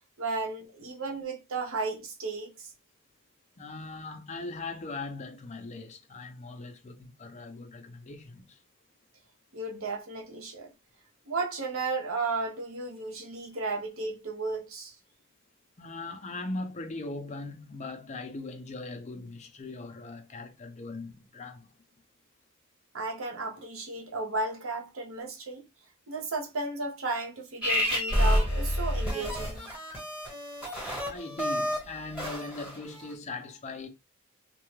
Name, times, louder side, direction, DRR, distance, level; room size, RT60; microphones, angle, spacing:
voice 1, 0.2-2.7 9.5-10.7 11.3-14.9 22.9-25.7 26.1-29.7, right 3 dB, 70° right, 0.8 m, -34 dB
voice 2, 3.6-8.6 15.8-21.8 31.0-33.9, left 3 dB, 35° left, 0.5 m, -40 dB
sound 1, 27.6-33.1, equal, 5° right, 1.3 m, -29 dB
2.6 x 2.3 x 3.1 m
head